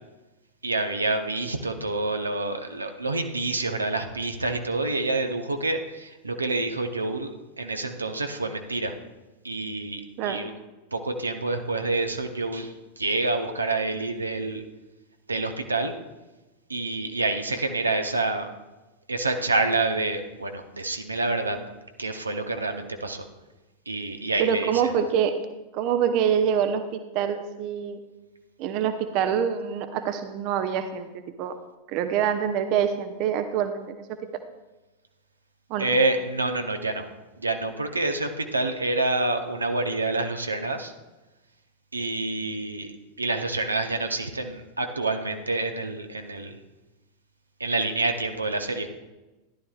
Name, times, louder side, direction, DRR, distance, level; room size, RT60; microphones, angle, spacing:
voice 1, 0.6-8.9 9.4-10.5 10.9-14.6 15.3-15.9 16.7-18.5 19.1-21.6 22.0-23.3 23.9-24.9 35.8-37.1 37.4-40.9 41.9-42.9 43.2-46.6 47.6-48.9, right 2 dB, 80° right, 5 dB, 0.8 m, -27 dB
voice 2, 24.4-25.4 25.7-28.0 28.6-31.5 31.9-34.0 35.7-35.9, right 8 dB, 40° right, 9 dB, 0.7 m, -25 dB
14.5 x 11.0 x 2.4 m, 1.1 s
figure-of-eight pair, 90°, 0 cm